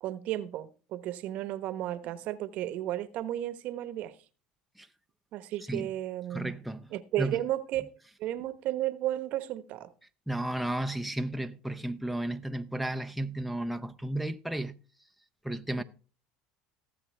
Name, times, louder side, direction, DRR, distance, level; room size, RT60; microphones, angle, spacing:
voice 1, 0.0-4.1 5.3-6.5 6.9-7.8 8.2-9.9 15.8-15.9, right 13 dB, 60° right, 1.0 m, -33 dB
voice 2, 6.3-6.9 7.2-7.4 10.3-14.8 15.4-15.8, right 1 dB, ahead, 0.6 m, -33 dB
18.0 x 7.2 x 3.4 m
supercardioid pair, 105°, 3 cm